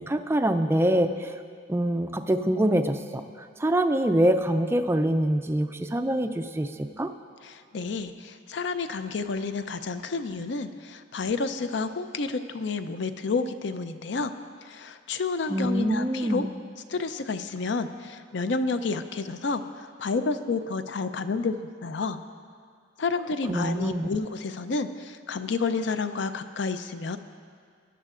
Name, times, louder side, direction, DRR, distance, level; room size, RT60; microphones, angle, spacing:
voice 1, 0.0-1.3 1.7-3.2 3.6-7.1 15.5-16.5 23.5-24.1, right 1 dB, 10° right, 7 dB, 0.3 m, -25 dB
voice 2, 7.4-14.3 14.7-16.5 16.9-21.5 21.8-22.2 23.0-27.2, left 4 dB, 60° left, 10 dB, 0.5 m, -30 dB
19.0 x 11.0 x 2.5 m, 2.1 s
head